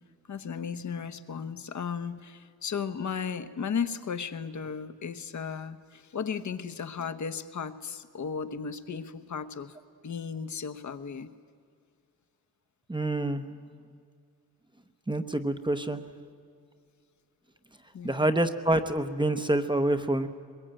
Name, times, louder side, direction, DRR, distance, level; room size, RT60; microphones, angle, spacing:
voice 1, 0.3-9.8 10.0-11.3 17.9-18.3, left 6 dB, 50° left, 10 dB, 1.1 m, -35 dB
voice 2, 12.9-13.4 15.1-16.0 18.0-20.3, right 1 dB, 15° right, 8 dB, 0.9 m, -27 dB
23.5 x 21.5 x 8.9 m, 2.3 s
wide cardioid pair, 165°, 37 cm